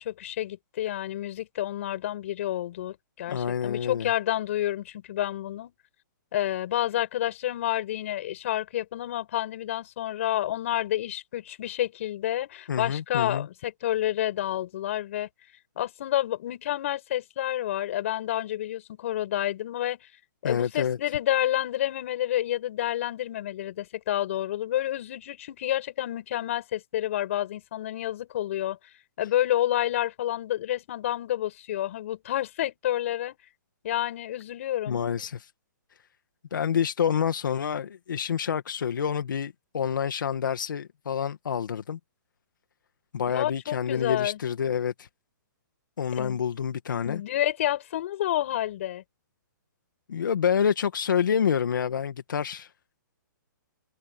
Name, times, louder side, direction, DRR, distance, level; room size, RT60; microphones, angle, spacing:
voice 1, 0.0-5.7 6.3-15.3 15.7-20.0 20.4-28.8 29.2-33.4 33.8-35.0 43.3-44.4 46.1-46.4 47.0-49.0, left 13 dB, 40° left, 6.8 m, -29 dB
voice 2, 3.3-4.1 12.7-13.5 20.4-21.0 34.9-35.5 36.5-42.0 43.1-45.1 46.0-47.2 50.1-52.7, left 7 dB, 75° left, 1.9 m, -28 dB
hypercardioid pair, 170°, 11 cm